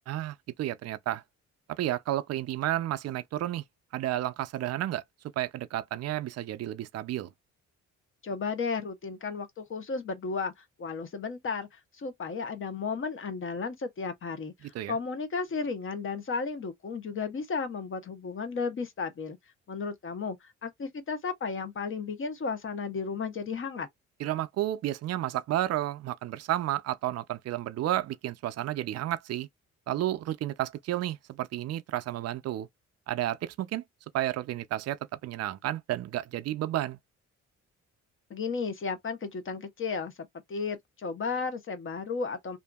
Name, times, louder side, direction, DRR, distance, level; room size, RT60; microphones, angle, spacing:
voice 1, 0.1-1.2 1.8-3.6 3.9-5.0 5.4-7.3 14.7-15.0 24.2-29.5 29.9-32.7 33.1-33.8 34.1-37.0, right 13 dB, 55° right, 0.5 m, -31 dB
voice 2, 8.2-19.4 19.7-20.4 20.6-23.9 38.3-40.1 40.5-42.6, left 5 dB, 45° left, 0.9 m, -34 dB
2.6 x 2.6 x 2.3 m
cardioid pair, 90°, 30 cm